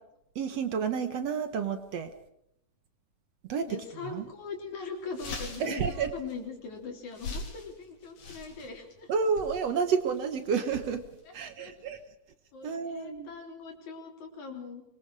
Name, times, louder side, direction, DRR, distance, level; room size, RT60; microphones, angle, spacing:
voice 1, 0.4-2.1 3.5-3.7 4.0-4.3 5.6-6.1 9.1-11.0 11.3-12.0 12.6-13.3, right 6 dB, 60° right, 9 dB, 2.2 m, -30 dB
voice 2, 3.7-9.1 11.3-11.7 12.5-14.8, left 4 dB, 65° left, 2 dB, 5.1 m, -41 dB
sound 1, 4.0-4.2 4.6-4.7 5.0-12.0, left 3 dB, 85° left, 5.1 m, -44 dB
24.5 x 22.5 x 4.9 m, 0.77 s
omnidirectional pair, 3.6 m